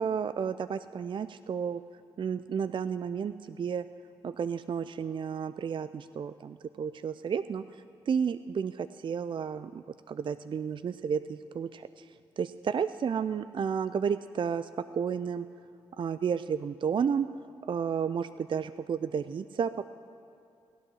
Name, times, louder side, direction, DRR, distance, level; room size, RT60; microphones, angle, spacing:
voice 1, 0.0-1.8 2.2-3.9 4.2-7.6 8.1-12.1 12.4-15.5 16.0-17.3 17.7-19.9, right 7 dB, 45° right, 12 dB, 0.4 m, -32 dB
14.5 x 11.0 x 6.3 m, 2.5 s
hypercardioid pair, 45°, 12 cm